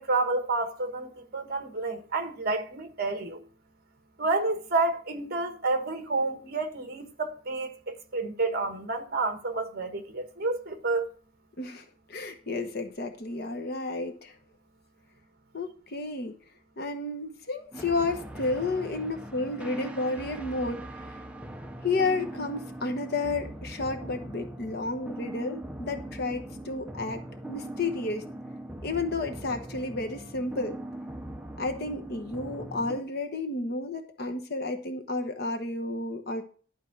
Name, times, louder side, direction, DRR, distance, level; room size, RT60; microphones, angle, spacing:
voice 1, 0.0-3.4 4.2-11.1, right 3 dB, 45° right, 1.4 m, -29 dB
voice 2, 11.6-14.3 15.5-16.4 16.8-21.2 21.8-28.2 28.8-30.8 31.6-36.4, left 3 dB, 50° left, 1.0 m, -31 dB
sound 1, 17.7-33.0, right 1 dB, 5° right, 0.6 m, -41 dB
11.5 x 4.6 x 6.0 m
head